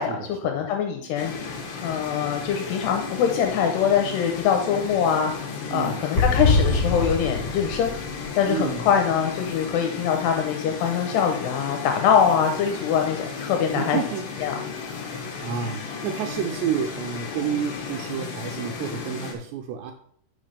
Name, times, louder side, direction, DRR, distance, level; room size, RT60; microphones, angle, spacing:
voice 1, 0.0-1.3 1.8-5.3 5.7-7.9 8.4-14.0 14.4-14.5, left 8 dB, 80° left, 3 dB, 2.8 m, -23 dB
sound 1, 1.2-19.3, left 5 dB, 65° left, 2.4 m, -34 dB
voice 2, 5.7-6.0 8.5-8.9 13.8-14.3 15.4-19.9, right 8 dB, 85° right, 3 dB, 2.8 m, -29 dB
sound 2, 6.1-9.9 10.2-10.3 10.5-10.6, left 3 dB, 25° left, 3.1 m, -25 dB
10.5 x 5.8 x 3.4 m, 0.64 s
omnidirectional pair, 4.9 m